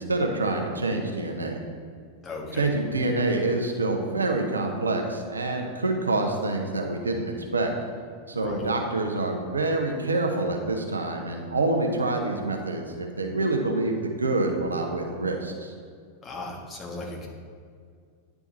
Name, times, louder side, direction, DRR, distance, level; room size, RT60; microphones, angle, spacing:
voice 1, 0.0-1.6 2.5-7.7 8.3-15.7, right 2 dB, 75° right, 3 dB, 0.7 m, -26 dB
voice 2, 2.2-2.7 8.3-8.7 16.2-17.3, left 3 dB, 20° left, -2 dB, 1.4 m, -37 dB
10.0 x 3.5 x 4.0 m, 2.1 s
figure-of-eight pair, 90°, 0 cm